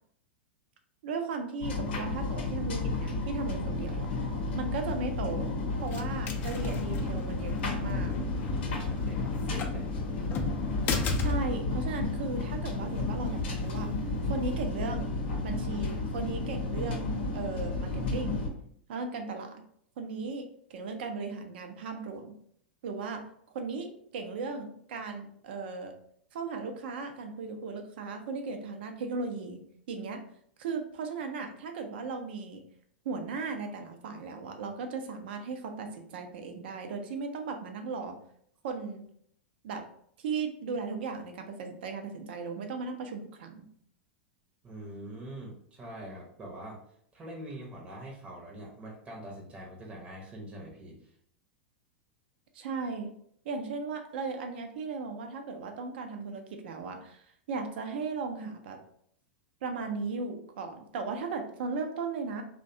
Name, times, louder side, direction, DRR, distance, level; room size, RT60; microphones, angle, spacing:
voice 1, 1.0-4.1 4.5-5.6 5.8-8.2 10.9-13.9 14.3-15.1 15.4-18.4 18.9-19.6 20.0-22.3 22.8-23.3 23.5-25.9 26.3-29.6 29.9-30.2 30.6-32.6 33.0-38.2 38.6-39.0 39.6-39.9 40.2-43.7 52.5-53.1 53.4-58.8 59.6-62.4, right 4 dB, 65° right, 5 dB, 0.5 m, -36 dB
sound 1, 1.6-18.5, left 3 dB, 70° left, 0.7 m, -32 dB
sound 2, 4.9-14.5, left 3 dB, 35° left, 0.4 m, -37 dB
voice 2, 8.5-10.1 44.6-46.8 47.1-51.1, right 1 dB, 20° right, -2 dB, 0.7 m, -44 dB
2.6 x 2.1 x 2.5 m, 0.66 s
hypercardioid pair, 100°, 6 cm